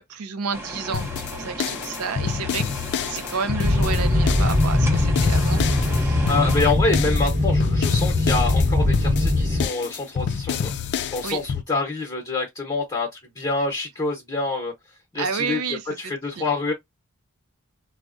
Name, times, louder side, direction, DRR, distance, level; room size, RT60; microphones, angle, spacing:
voice 1, 0.0-2.7 3.1-6.3 11.2-11.4 15.2-16.4, right 5 dB, 90° right, 0.5 m, -31 dB
sound 1, 0.5-6.6, equal, 10° right, 0.6 m, -35 dB
sound 2, 0.9-11.6, left 7 dB, 55° left, 0.3 m, -29 dB
sound 3, 3.6-9.7, left 2 dB, 35° right, 1.0 m, -20 dB
voice 2, 6.3-10.7 11.1-14.7 15.1-16.7, left 3 dB, 20° left, 0.8 m, -26 dB
3.5 x 2.1 x 2.5 m
head